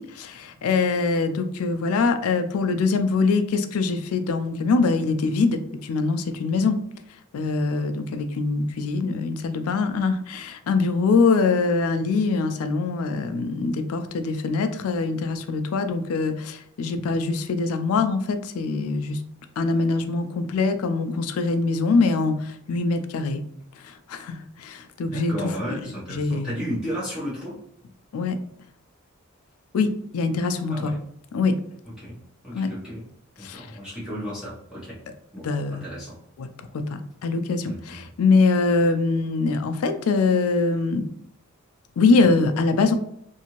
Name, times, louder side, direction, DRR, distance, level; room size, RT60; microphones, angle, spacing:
voice 1, 0.0-6.8 7.3-19.2 19.6-23.4 23.8-25.3 26.2-26.5 28.1-28.4 29.7-30.9 31.3-31.6 32.5-32.7 33.4-33.6 35.4-35.8 36.4-36.5 36.7-41.1 42.0-42.9, left 4 dB, 80° left, 8 dB, 0.4 m, -23 dB
voice 2, 25.1-27.6 30.7-31.0 32.0-32.2 32.4-33.0 33.4-35.0 35.3-36.2 37.6-38.1, equal, 5° right, -9 dB, 0.8 m, -33 dB
2.7 x 2.5 x 2.9 m, 0.71 s
head